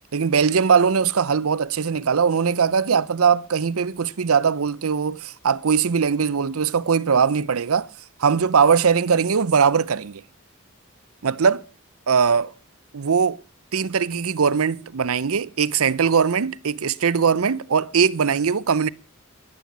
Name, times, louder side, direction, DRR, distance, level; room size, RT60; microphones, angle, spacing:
voice 1, 0.1-7.9 8.2-10.2 11.2-11.6 12.1-12.5 12.9-13.4 13.7-18.9, right 6 dB, 85° right, 0.6 m, -20 dB
13.5 x 11.0 x 6.1 m
head